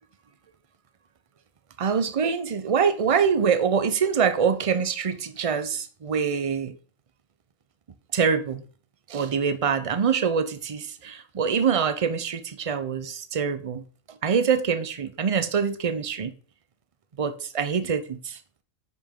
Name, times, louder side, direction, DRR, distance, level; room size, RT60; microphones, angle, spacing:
voice 1, 1.8-6.7 8.1-8.6 9.1-13.8 14.1-16.3 17.2-18.4, right 6 dB, 40° right, 0.5 m, -25 dB
9.5 x 5.4 x 3.7 m
omnidirectional pair, 1.4 m